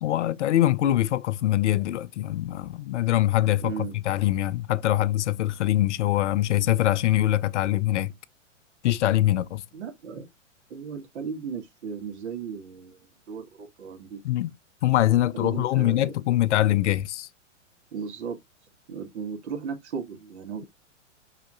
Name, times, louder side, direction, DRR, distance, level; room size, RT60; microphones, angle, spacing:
voice 1, 0.0-8.1 8.8-9.6 14.2-14.5 14.8-17.3, left 14 dB, 65° left, 0.5 m, -23 dB
voice 2, 3.6-3.9 9.7-10.3 10.7-13.0 13.3-14.2 15.3-16.1 17.9-18.4 18.9-20.7, right 6 dB, 65° right, 2.1 m, -35 dB
5.8 x 3.6 x 2.5 m
hypercardioid pair, 110°, 37 cm